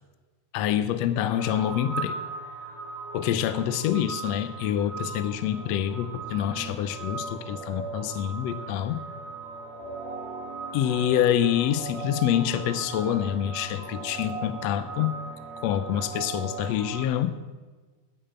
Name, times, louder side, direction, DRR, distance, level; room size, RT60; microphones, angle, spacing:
voice 1, 0.5-2.2 3.1-9.0 10.7-15.2 15.6-17.4, left 10 dB, 75° left, 11 dB, 1.6 m, -26 dB
sound 1, 1.3-17.0, right 3 dB, 25° right, 1.8 m, -38 dB
10.0 x 10.0 x 7.9 m, 1.3 s
omnidirectional pair, 3.6 m